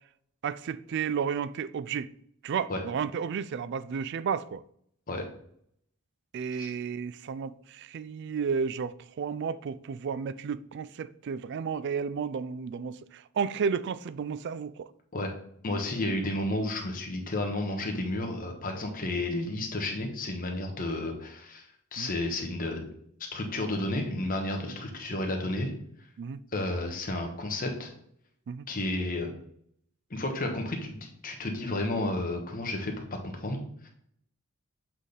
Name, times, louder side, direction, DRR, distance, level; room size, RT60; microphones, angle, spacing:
voice 1, 0.4-2.1 2.4-4.6 6.3-14.9 22.0-22.1 26.2-26.4 28.5-28.6, right 6 dB, 55° right, 0.3 m, -32 dB
voice 2, 15.6-22.9 23.3-25.7 26.5-27.9 28.7-29.3 30.1-33.0 33.4-33.9, left 1 dB, 40° left, 1.1 m, -32 dB
7.4 x 4.0 x 3.4 m
head